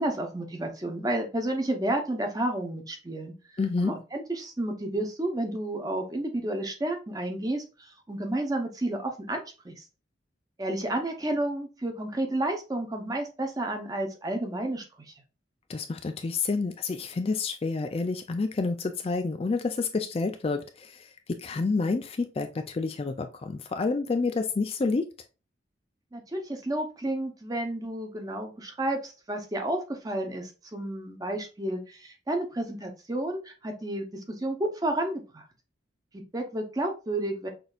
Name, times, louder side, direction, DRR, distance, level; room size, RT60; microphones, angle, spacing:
voice 1, 0.0-3.3 3.8-7.6 8.1-9.7 10.6-14.8 26.1-35.4 36.1-37.5, right 1 dB, 20° right, 0.8 m, -31 dB
voice 2, 3.6-3.9 15.7-25.1, left 4 dB, 30° left, 0.4 m, -29 dB
6.0 x 2.7 x 2.4 m
head